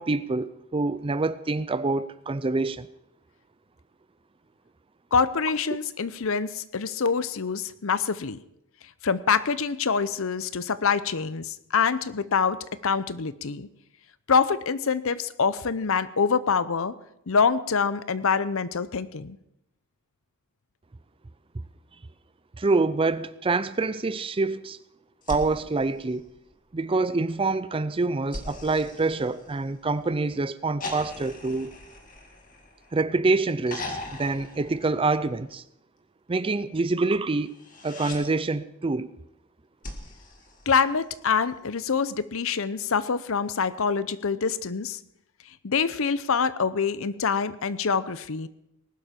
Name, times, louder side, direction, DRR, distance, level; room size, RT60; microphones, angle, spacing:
voice 1, 0.0-2.9 22.6-24.8 25.3-26.2 26.7-31.7 32.9-35.6 36.3-37.5 37.8-39.1, right 3 dB, 25° right, 0.5 m, -26 dB
voice 2, 5.1-8.4 9.0-13.7 14.3-16.9 17.3-19.4 40.7-45.0 45.6-48.5, left 5 dB, 65° left, 0.7 m, -25 dB
sound 1, 25.2-26.8 28.3-30.0 30.8-33.1 33.7-35.5 37.5-38.2 39.8-41.3 42.8-42.9, left 2 dB, 35° left, 2.1 m, -40 dB
19.5 x 12.0 x 4.4 m
head